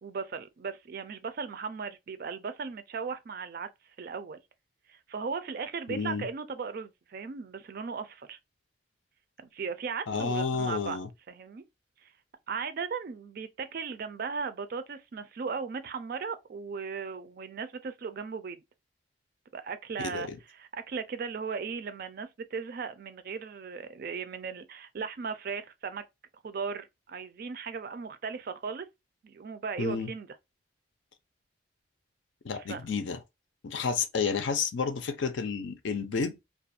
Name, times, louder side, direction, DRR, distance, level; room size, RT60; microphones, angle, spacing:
voice 1, 0.0-3.7 4.0-4.4 4.9-8.4 9.4-11.0 11.3-11.6 12.0-12.1 12.5-18.6 19.5-20.3 20.5-26.0 26.4-28.9 29.2-30.3 32.6-32.8, right 5 dB, 50° right, 0.4 m, -37 dB
voice 2, 5.9-6.3 10.1-11.1 20.0-20.4 29.8-30.1 32.4-33.2 33.6-36.5, left 5 dB, 75° left, 0.5 m, -31 dB
2.4 x 2.2 x 2.6 m
head